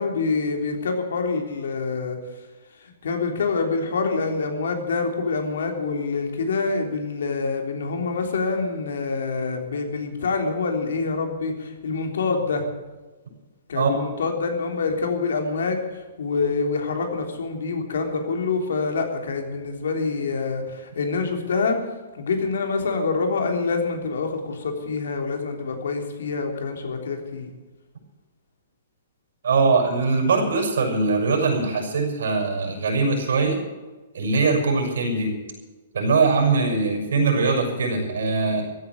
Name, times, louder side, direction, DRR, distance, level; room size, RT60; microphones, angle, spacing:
voice 1, 0.0-2.2 2.8-12.6 13.7-21.8 22.1-27.5, left 4 dB, 80° left, 4 dB, 3.4 m, -26 dB
voice 2, 29.4-33.6 34.1-35.3 35.9-38.6, right 4 dB, 80° right, 2 dB, 6.0 m, -21 dB
15.0 x 9.1 x 9.3 m, 1.2 s
hypercardioid pair, 170°, 0 cm